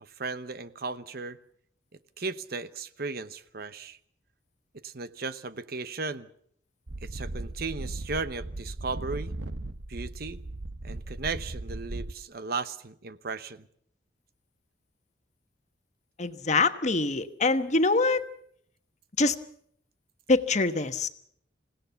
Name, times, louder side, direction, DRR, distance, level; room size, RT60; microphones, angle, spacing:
voice 1, 0.0-1.4 2.2-4.0 4.7-6.3 7.0-9.3 9.9-10.4 10.8-13.7, right 4 dB, 55° right, 13 dB, 0.9 m, -36 dB
sound 1, 6.9-12.1, right 2 dB, 75° right, 1.1 m, -37 dB
voice 2, 16.2-18.2 19.2-19.4 20.3-21.1, left 3 dB, 40° left, 9 dB, 1.3 m, -24 dB
28.0 x 17.0 x 5.8 m, 0.65 s
head